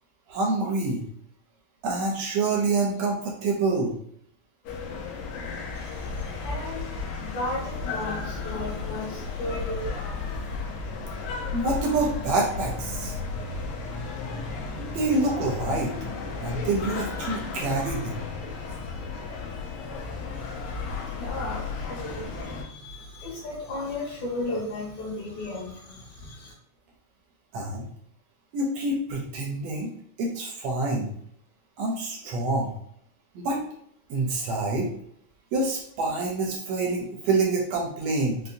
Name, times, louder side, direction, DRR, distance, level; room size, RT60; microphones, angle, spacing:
voice 1, 0.3-1.1 1.8-4.0 11.5-13.2 14.8-15.9 16.4-18.2 27.5-27.9 28.5-29.9 30.2-31.1 31.8-32.7 33.3-33.6 34.1-34.9 35.5-38.4, right 3 dB, 80° right, 0 dB, 1.5 m, -27 dB
sound 1, 4.7-22.6, left 4 dB, 90° left, 2.1 m, -34 dB
voice 2, 5.7-10.6 20.3-26.5, left 1 dB, 70° left, -4 dB, 2.4 m, -35 dB
5.2 x 2.1 x 2.6 m, 0.67 s
omnidirectional pair, 3.4 m